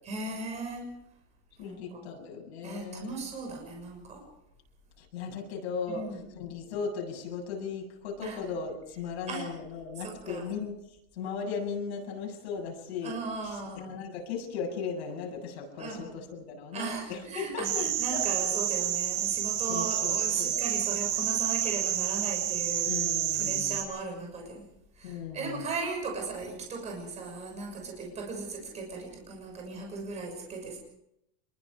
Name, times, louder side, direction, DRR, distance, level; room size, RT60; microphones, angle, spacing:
voice 1, 0.0-0.9 1.6-2.1 2.6-4.2 5.9-6.2 8.2-8.4 9.3-9.5 10.0-10.6 13.0-13.9 15.8-16.1 16.7-24.6 24.9-30.8, right 3 dB, 20° right, 1 dB, 6.5 m, -37 dB
voice 2, 1.6-3.2 5.0-6.1 6.3-10.8 11.1-17.8 18.1-18.2 19.7-20.6 22.8-23.8 25.0-25.7, left 5 dB, 80° left, 1 dB, 7.8 m, -37 dB
sound 1, 17.6-23.8, right 11 dB, 70° right, 4.7 m, -29 dB
25.5 x 22.5 x 5.0 m, 0.80 s
supercardioid pair, 175°, 32 cm